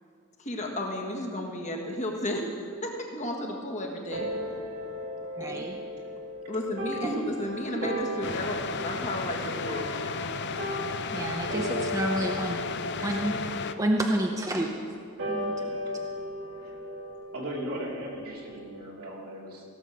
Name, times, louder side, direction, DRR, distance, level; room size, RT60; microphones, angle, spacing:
voice 1, 0.4-4.3 5.4-5.7 6.5-10.0, left 1 dB, 35° left, 1 dB, 1.6 m, -33 dB
sound 1, 4.1-18.8, equal, 60° right, 2.2 m, -37 dB
voice 2, 5.4-5.8 11.1-12.6 13.0-13.3 13.8-14.9 15.3-15.9, right 1 dB, 15° right, 1 dB, 0.6 m, -29 dB
sound 2, 8.2-13.7, left 4 dB, 55° left, 0.6 m, -34 dB
voice 3, 17.3-19.6, right 1 dB, 80° right, -3 dB, 2.9 m, -37 dB
16.5 x 7.4 x 6.3 m, 2.2 s
head